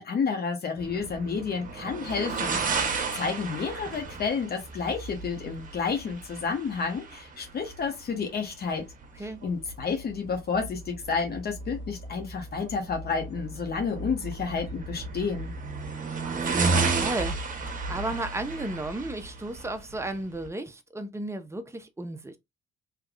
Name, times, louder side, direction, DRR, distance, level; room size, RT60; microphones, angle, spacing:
voice 1, 0.0-8.9 9.2-15.5, left 5 dB, 50° left, 1.0 m, -30 dB
sound 1, 0.8-20.5, right 4 dB, 45° right, 1.1 m, -33 dB
voice 2, 16.2-17.4 17.9-22.4, right 2 dB, 15° right, 0.7 m, -34 dB
3.4 x 3.2 x 2.4 m
cardioid pair, 90°, 20 cm